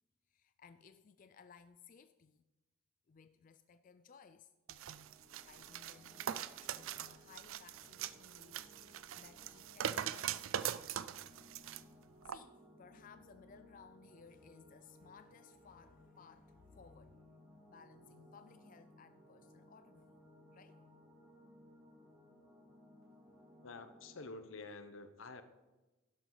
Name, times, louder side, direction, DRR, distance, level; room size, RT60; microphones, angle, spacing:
voice 1, 0.3-2.4 3.1-4.5 5.5-11.1 12.2-17.2 17.7-20.2 20.5-20.8, left 6 dB, 40° left, 0.4 m, -61 dB
sound 1, 4.7-11.8 12.3-12.4, right 9 dB, 85° right, 0.4 m, -42 dB
sound 2, 4.8-24.2, equal, 15° right, 3.5 m, -62 dB
voice 2, 23.6-25.4, left 3 dB, 80° left, 1.0 m, -49 dB
12.0 x 11.0 x 4.0 m
head